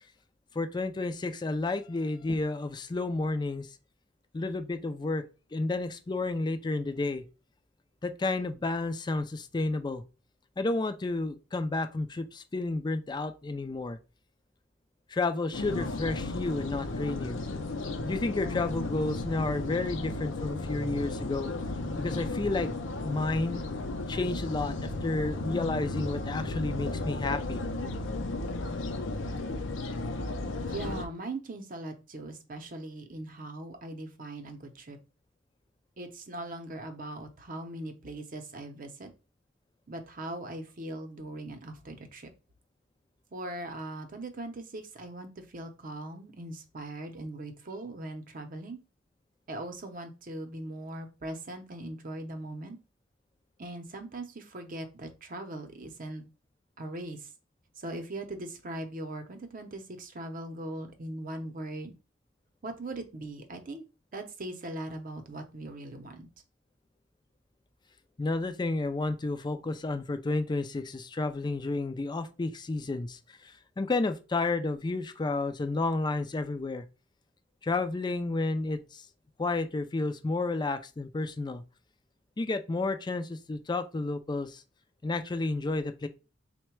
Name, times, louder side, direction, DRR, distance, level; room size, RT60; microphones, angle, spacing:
voice 1, 0.5-3.7 4.3-7.2 8.0-10.0 10.6-14.0 15.1-17.4 18.1-21.5 22.0-22.7 23.0-23.6 24.1-27.6 68.2-76.8 77.6-79.1 79.4-81.6 82.4-84.6 85.0-86.1, left 3 dB, 20° left, 0.4 m, -31 dB
sound 1, 15.5-31.1, left 2 dB, 70° left, 0.5 m, -34 dB
voice 2, 30.7-35.0 36.0-39.1 39.9-42.3 43.3-48.8 49.5-52.8 53.6-56.2 56.8-57.3 57.8-61.9 62.6-63.8 64.1-66.3, right 1 dB, 45° right, 0.7 m, -40 dB
3.8 x 2.2 x 4.5 m
head